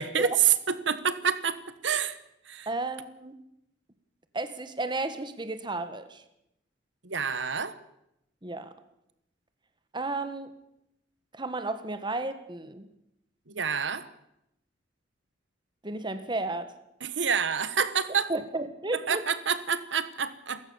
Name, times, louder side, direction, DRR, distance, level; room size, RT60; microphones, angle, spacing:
voice 1, 0.0-2.2 2.5-2.7 7.0-7.7 13.5-14.1 17.0-18.3 19.1-20.7, right 7 dB, 80° right, 13 dB, 1.3 m, -28 dB
voice 2, 2.6-3.4 4.3-6.2 8.4-8.7 9.9-10.5 11.3-12.9 15.8-16.7 18.1-19.3, right 2 dB, 25° right, 10 dB, 1.6 m, -33 dB
28.0 x 15.5 x 7.2 m, 0.84 s
head